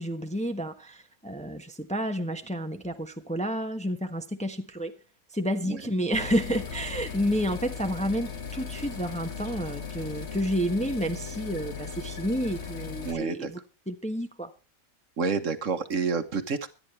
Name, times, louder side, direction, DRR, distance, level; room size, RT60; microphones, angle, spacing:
voice 1, 0.0-4.9 5.3-13.6 13.9-14.5, equal, 5° left, 1.0 m, -30 dB
sound 1, 6.1-13.1, left 6 dB, 50° left, 1.9 m, -37 dB
voice 2, 13.0-13.5 15.2-16.7, right 5 dB, 60° right, 1.4 m, -29 dB
24.5 x 9.6 x 3.2 m
omnidirectional pair, 1.5 m